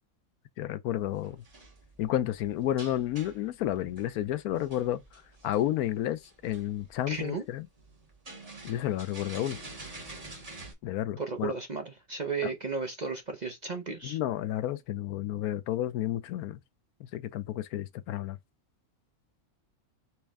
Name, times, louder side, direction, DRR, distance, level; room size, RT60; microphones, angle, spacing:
voice 1, 0.6-1.4 2.0-5.0 5.4-7.7 8.6-9.6 10.8-11.5 14.0-16.6 17.0-18.4, left 13 dB, 85° left, 1.1 m, -31 dB
sound 1, 1.0-10.7, right 2 dB, 25° right, 1.5 m, -48 dB
voice 2, 7.1-7.4 11.2-14.2, right 4 dB, 45° right, 0.6 m, -34 dB
4.6 x 3.1 x 3.4 m
omnidirectional pair, 1.5 m